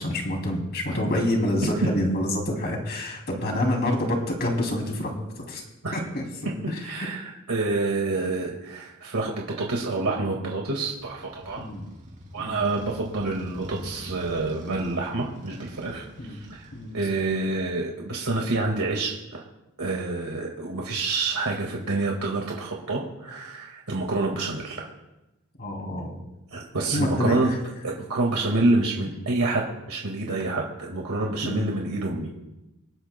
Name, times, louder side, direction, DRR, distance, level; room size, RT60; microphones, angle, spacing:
voice 1, 0.0-5.6 5.9-7.1 11.6-11.8 12.4-12.6 16.2-16.4 16.7-17.0 25.6-26.2 26.9-27.6 31.4-31.7, left 1 dB, 45° left, 1 dB, 2.8 m, -27 dB
voice 2, 6.8-11.7 12.3-16.7 16.9-19.4 19.8-24.9 26.5-27.5 27.8-32.3, right 2 dB, 90° right, -1 dB, 1.8 m, -27 dB
Motorcycle, 11.0-17.6, equal, 35° right, 3.2 m, -44 dB
24.0 x 11.0 x 2.2 m, 0.98 s
head